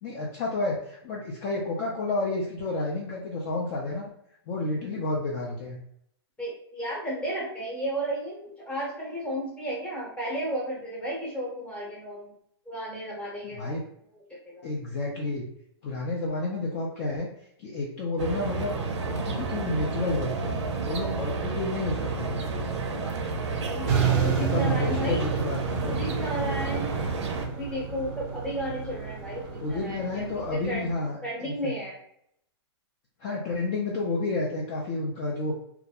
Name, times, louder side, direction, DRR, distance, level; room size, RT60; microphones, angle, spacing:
voice 1, 0.0-4.1 4.5-5.8 13.4-13.8 14.6-15.4 15.8-17.3 17.6-18.8 19.1-20.5 20.8-22.4 24.3-26.0 29.6-31.8 33.2-35.5, left 2 dB, 35° left, -3 dB, 0.4 m, -30 dB
voice 2, 6.4-12.3 12.7-13.8 14.5-14.7 23.6-25.3 25.9-27.0 27.5-30.9 31.2-32.0, equal, 5° left, -5 dB, 0.8 m, -33 dB
sound 1, 18.2-27.5, right 4 dB, 85° right, 0.5 m, -31 dB
sound 2, 23.9-30.9, right 7 dB, 35° right, 0.5 m, -30 dB
2.3 x 2.1 x 2.8 m, 0.71 s
hypercardioid pair, 150°, 14 cm